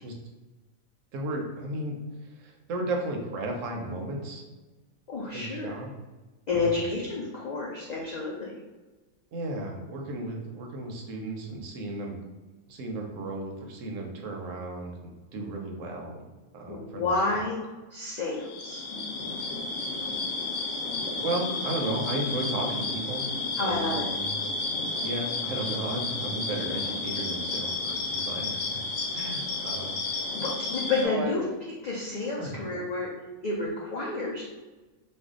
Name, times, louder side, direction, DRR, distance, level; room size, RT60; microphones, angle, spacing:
voice 1, 1.1-2.0 2.2-4.4 5.3-5.9 6.5-6.9 9.3-12.2 12.7-16.3 16.5-17.1 21.2-23.3 23.6-24.4 25.0-28.8 29.1-30.0 31.0-31.3 32.4-32.8, right 2 dB, 75° right, 1 dB, 1.0 m, -34 dB
voice 2, 5.1-5.8 6.5-8.5 16.7-17.6 17.9-18.8 23.6-24.1 29.1-29.2 30.3-31.4 31.8-33.1 33.4-34.4, left 3 dB, 85° left, -4 dB, 0.3 m, -30 dB
sound 1, 18.4-31.1, left 3 dB, 65° left, 0.9 m, -32 dB
2.6 x 2.2 x 3.6 m, 1.2 s
omnidirectional pair, 1.4 m